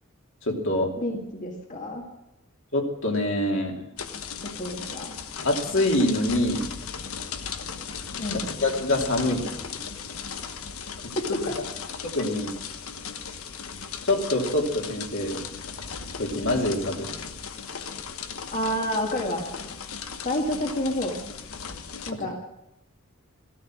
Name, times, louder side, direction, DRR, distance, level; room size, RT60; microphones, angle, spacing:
voice 1, 0.4-0.9 2.7-3.8 5.4-6.7 8.6-9.4 11.0-11.1 12.0-12.5 14.0-15.4 16.2-17.1, left 1 dB, 65° left, 1 dB, 2.9 m, -25 dB
voice 2, 1.0-2.0 4.4-5.1 8.2-8.4 11.1-11.5 18.5-19.5 20.2-21.1 22.1-22.4, left 1 dB, 40° left, 1 dB, 1.7 m, -29 dB
sound 1, 4.0-22.1, left 6 dB, 90° left, 1.2 m, -37 dB
16.0 x 13.0 x 6.2 m, 0.88 s
head